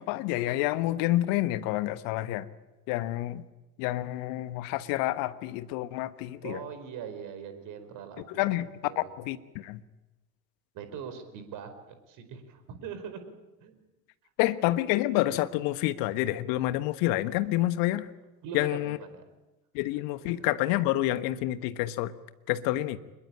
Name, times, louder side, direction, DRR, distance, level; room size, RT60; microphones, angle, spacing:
voice 1, 0.0-2.4 2.9-3.4 3.8-6.6 8.3-8.7 9.0-9.8 14.4-18.1 18.5-19.0 19.7-22.1 22.5-23.0, left 16 dB, 45° left, 14 dB, 1.4 m, -28 dB
voice 2, 6.4-9.1 10.7-13.2 13.6-13.8 18.4-19.2 19.9-20.4, right 7 dB, 40° right, 10 dB, 4.8 m, -42 dB
25.5 x 21.5 x 8.8 m, 1.0 s
figure-of-eight pair, 80°, 47 cm